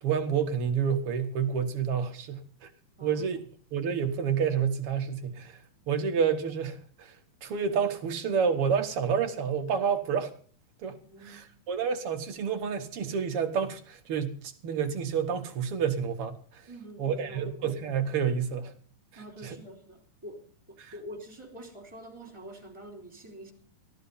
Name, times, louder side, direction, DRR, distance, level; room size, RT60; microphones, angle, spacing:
voice 1, 0.0-2.7 3.0-3.4 3.7-5.6 5.9-7.1 7.4-10.3 10.8-11.0 11.3-16.6 17.0-18.7 19.4-19.5 20.8-20.9, right 7 dB, 60° right, 1.7 m, -29 dB
voice 2, 11.0-11.5 16.7-17.6 19.1-23.5, right 1 dB, 10° right, 3.1 m, -46 dB
14.0 x 12.5 x 5.5 m
omnidirectional pair, 3.6 m